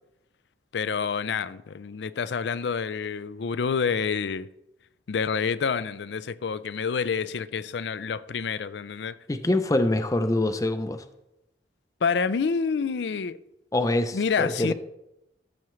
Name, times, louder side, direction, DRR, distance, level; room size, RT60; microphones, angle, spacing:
voice 1, 0.7-4.5 5.1-9.2 12.0-13.4 14.1-14.7, left 5 dB, 75° left, 0.4 m, -28 dB
voice 2, 9.3-11.0 13.7-14.7, left 2 dB, 20° left, 0.5 m, -25 dB
13.5 x 7.0 x 3.1 m
head